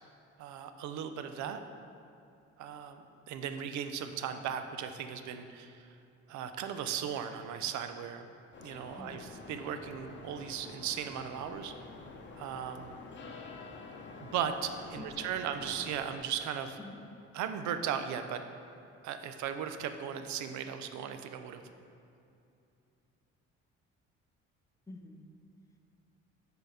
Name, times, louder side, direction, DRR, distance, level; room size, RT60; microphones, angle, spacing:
voice 1, 0.4-1.6 2.6-5.9 6.3-8.3 8.6-9.2 9.5-11.7 12.4-13.0 14.3-16.8 17.3-18.4 19.0-21.6, right 8 dB, 75° right, 8 dB, 0.6 m, -37 dB
sound 1, 8.5-16.2, left 3 dB, 40° left, 0.8 m, -48 dB
voice 2, 9.0-9.4 13.1-13.5 14.9-15.5 16.8-17.0 24.9-25.3, left 2 dB, 10° left, 3 dB, 0.6 m, -49 dB
7.0 x 4.0 x 5.6 m, 2.7 s
cardioid pair, 95°, 29 cm